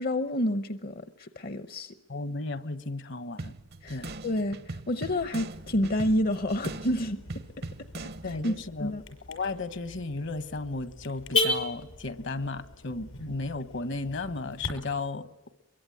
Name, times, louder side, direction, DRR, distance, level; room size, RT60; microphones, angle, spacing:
voice 1, 0.0-2.0 3.8-7.2 7.6-7.7 8.2-8.5 8.8-9.0, left 1 dB, 50° left, 0.8 m, -29 dB
voice 2, 2.1-3.5 3.9-4.1 8.2-8.9 9.3-15.3, left 3 dB, 65° left, 1.3 m, -34 dB
sound 1, 3.4-8.6, right 2 dB, 55° right, 0.9 m, -41 dB
Car / Alarm, 5.5-14.7, left 2 dB, 85° left, 5.9 m, -36 dB
24.0 x 22.5 x 9.3 m
head